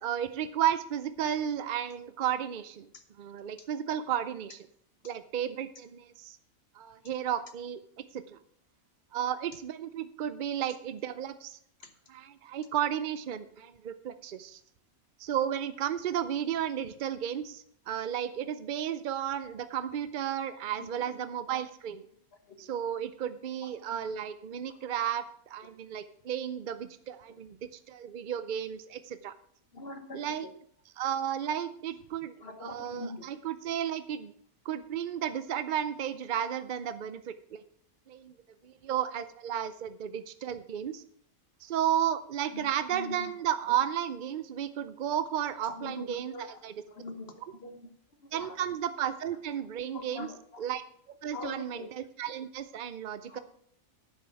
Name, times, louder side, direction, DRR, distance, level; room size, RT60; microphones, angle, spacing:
voice 1, 0.0-2.9 3.2-4.6 5.0-6.4 6.8-7.8 8.1-8.4 9.1-11.6 12.1-14.6 15.2-22.0 22.6-29.3 30.1-30.5 31.0-32.3 32.6-34.3 34.7-37.6 38.1-38.3 38.6-41.0 41.6-46.3 46.6-46.7 48.3-50.3 50.6-50.8 51.2-53.4, right 10 dB, 65° right, 12 dB, 0.5 m, -33 dB
voice 2, 20.8-21.6 22.4-22.7 23.6-24.0 24.7-24.8 25.7-25.8 29.7-30.5 32.4-33.3 42.5-43.3 43.7-43.8 45.6-47.9 48.2-48.6 49.9-50.6 51.3-51.9 53.3-53.4, left 2 dB, 50° left, 7 dB, 1.3 m, -44 dB
10.5 x 7.5 x 5.7 m, 0.66 s
omnidirectional pair, 1.5 m